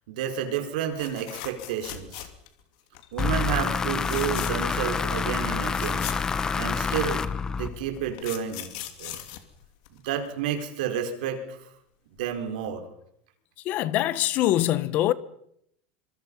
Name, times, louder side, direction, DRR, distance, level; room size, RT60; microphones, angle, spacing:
voice 1, 0.1-2.3 3.1-6.1 6.6-7.2 7.5-8.7 9.0-9.2 10.0-11.7 12.2-12.8, right 9 dB, 85° right, 4.9 m, -30 dB
sound 1, 1.0-2.6 2.9-3.3 3.9-4.8 5.1-5.2 5.5-7.0 7.7-10.3 12.2-12.3 12.6-12.7, left 13 dB, 60° left, 2.9 m, -39 dB
sound 2, 3.2-8.1, left 5 dB, 15° left, 1.0 m, -27 dB
voice 2, 13.7-15.1, left 14 dB, 40° left, 1.0 m, -23 dB
26.0 x 24.0 x 5.6 m
supercardioid pair, 170°, 4 cm